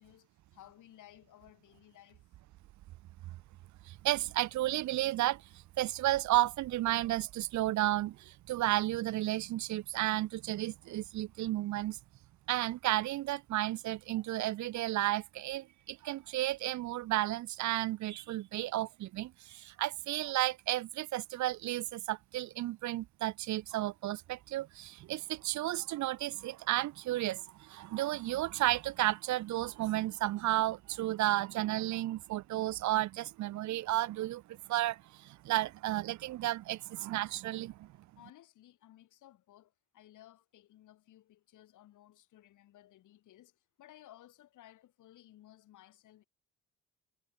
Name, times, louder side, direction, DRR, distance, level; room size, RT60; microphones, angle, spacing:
voice 1, 0.0-2.3 38.2-46.2, left 13 dB, 80° left, 6.1 m, -58 dB
voice 2, 3.9-12.0 12.5-37.9, right 15 dB, 70° right, 0.6 m, -33 dB
cardioid pair, 90°, 30 cm